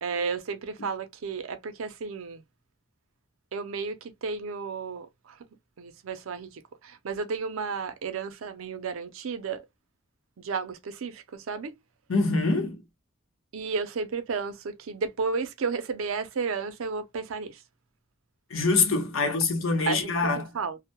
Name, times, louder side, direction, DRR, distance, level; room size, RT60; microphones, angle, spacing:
voice 1, 0.0-2.4 3.5-5.4 5.8-9.6 10.4-11.7 13.5-17.6 19.2-19.3 19.9-20.8, right 5 dB, 75° right, 0.5 m, -33 dB
voice 2, 12.1-12.8 18.5-20.5, left 3 dB, 70° left, 0.8 m, -25 dB
2.1 x 2.0 x 2.8 m
head